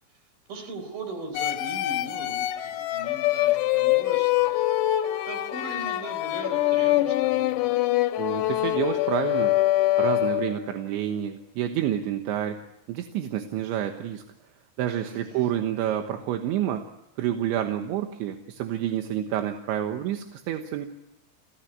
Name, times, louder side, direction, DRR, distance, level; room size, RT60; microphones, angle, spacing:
voice 1, 0.5-4.7 5.0-7.7 15.0-15.5, right 2 dB, 50° right, 8 dB, 5.9 m, -40 dB
sound 1, 1.3-10.7, left 15 dB, 70° left, 3.0 m, -24 dB
voice 2, 8.2-9.6 10.0-12.6 12.9-14.2 14.8-16.9 17.2-20.9, right 11 dB, 80° right, 5 dB, 3.5 m, -28 dB
29.5 x 16.5 x 9.4 m, 0.89 s
omnidirectional pair, 5.5 m